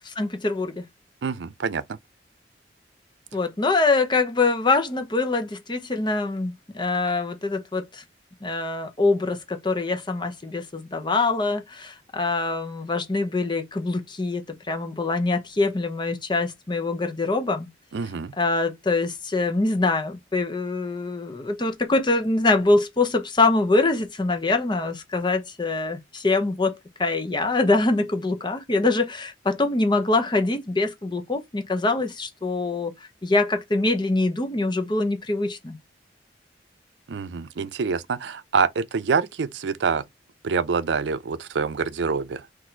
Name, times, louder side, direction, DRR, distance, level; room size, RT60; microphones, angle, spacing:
voice 1, 0.2-0.8 3.3-8.0 8.4-17.7 18.4-32.9 33.2-35.8, left 3 dB, 25° left, 0.8 m, -24 dB
voice 2, 1.2-2.0 17.9-18.4 37.1-40.0 40.4-42.5, right 5 dB, 85° right, 0.5 m, -26 dB
4.2 x 2.6 x 4.3 m
head